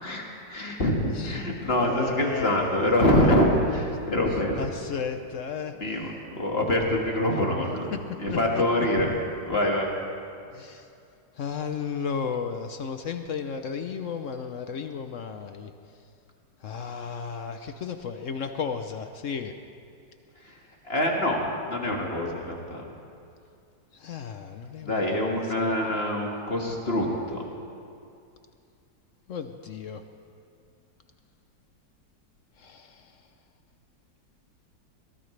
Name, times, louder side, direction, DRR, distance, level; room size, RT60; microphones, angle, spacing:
voice 1, 0.0-4.7 5.8-7.9 8.2-9.1 9.4-9.9 20.4-20.6 20.8-22.9 24.8-27.4, left 1 dB, 35° left, -1 dB, 2.0 m, -25 dB
voice 2, 1.8-2.9 3.1-3.3 4.6-5.7 7.6-7.7 8.3-8.9 10.5-10.9 11.4-15.7 16.6-19.5 23.9-25.7 29.3-30.0 32.6-33.1, left 6 dB, 65° left, 7 dB, 0.8 m, -34 dB
22.0 x 19.0 x 3.3 m, 2.5 s
omnidirectional pair, 2.0 m